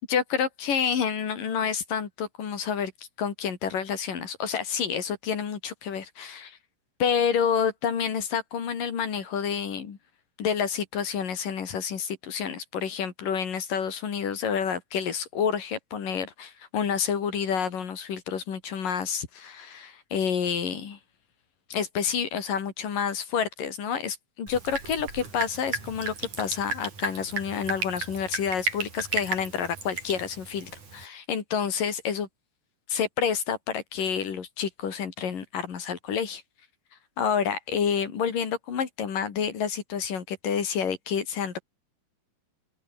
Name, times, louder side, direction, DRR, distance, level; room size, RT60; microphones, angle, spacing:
voice 1, 0.1-2.9 3.2-6.6 7.0-10.0 10.4-21.0 21.7-32.3 32.9-36.4 37.2-41.6, left 7 dB, 50° left, 4.3 m, -29 dB
Drip, 24.5-31.1, right 4 dB, 40° right, 7.1 m, -34 dB
open air
omnidirectional pair, 5.4 m